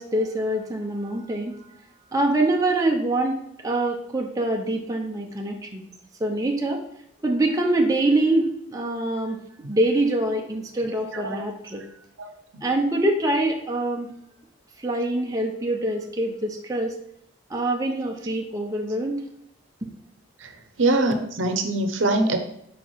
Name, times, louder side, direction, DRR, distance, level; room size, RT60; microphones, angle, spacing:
voice 1, 0.0-1.6 2.1-5.9 6.2-6.8 7.2-9.4 9.7-11.8 12.6-14.1 14.8-17.0 17.5-19.2, right 1 dB, 15° right, 1 dB, 0.6 m, -24 dB
voice 2, 10.8-11.4 12.2-12.3 12.5-12.6 20.4-20.5 20.8-22.4, right 2 dB, 70° right, 7 dB, 0.8 m, -24 dB
5.0 x 4.5 x 4.5 m, 0.76 s
head